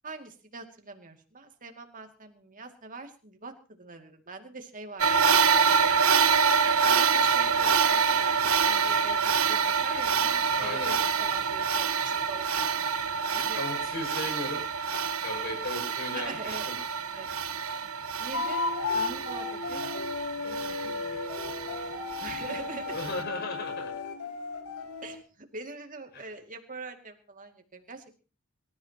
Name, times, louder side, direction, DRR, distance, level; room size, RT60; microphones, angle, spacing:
voice 1, 0.0-6.0 6.7-13.6 16.2-16.7 17.2-17.9 18.2-18.6 18.9-19.8 20.4-21.7 22.2-23.0 25.0-28.2, right 3 dB, 40° right, 5 dB, 2.4 m, -43 dB
sound 1, 5.0-23.2, right 6 dB, 85° right, 1.4 m, -26 dB
voice 2, 10.6-10.9 13.6-14.6 14.9-16.7 22.9-23.9 26.1-26.2, left 2 dB, 50° left, 3 dB, 6.5 m, -36 dB
sound 2, 18.3-25.2, left 4 dB, 85° left, 2.7 m, -34 dB
25.5 x 14.0 x 3.0 m, 0.35 s
head